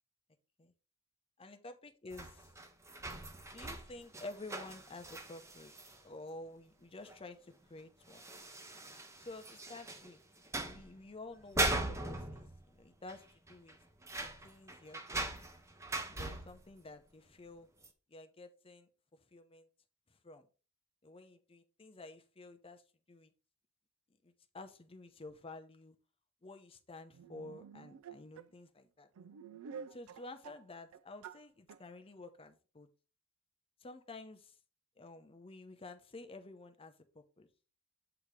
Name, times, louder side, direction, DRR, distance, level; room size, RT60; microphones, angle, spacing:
voice 1, 1.4-2.5 3.5-5.7 6.0-8.2 9.2-10.2 10.6-13.8 14.1-15.5 16.1-17.7 18.1-19.7 20.1-20.5 21.0-22.8 23.1-23.3 24.2-26.0 26.4-29.1 29.9-32.9 33.8-34.6 35.0-37.5, left 2 dB, 25° left, 0.7 m, -51 dB
sound 1, 2.1-6.0 7.1-7.2 7.5-7.6 8.1-10.1 10.5-11.0 11.4-12.8 13.1-13.2 13.5-16.7 17.8-17.9, right 2 dB, 15° right, 0.6 m, -40 dB
sound 2, 27.1-28.5 29.2-30.6 30.9-31.4 31.7-31.8, right 6 dB, 70° right, 0.3 m, -50 dB
8.1 x 2.9 x 4.9 m
head